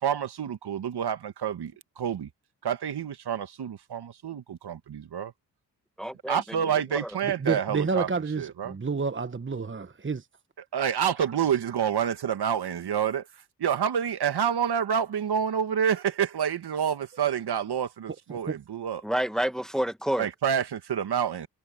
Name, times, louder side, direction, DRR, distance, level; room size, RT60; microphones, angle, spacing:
voice 1, 0.0-2.3 2.6-5.3 6.3-8.1 8.4-8.7 10.7-13.3 13.6-19.0 20.2-21.5, right 8 dB, 70° right, 2.0 m, -28 dB
voice 2, 6.0-7.1 19.0-20.3, right 1 dB, ahead, 1.5 m, -29 dB
voice 3, 7.4-10.2 18.3-18.6, right 4 dB, 30° right, 1.3 m, -29 dB
supercardioid pair, 45°, 41 cm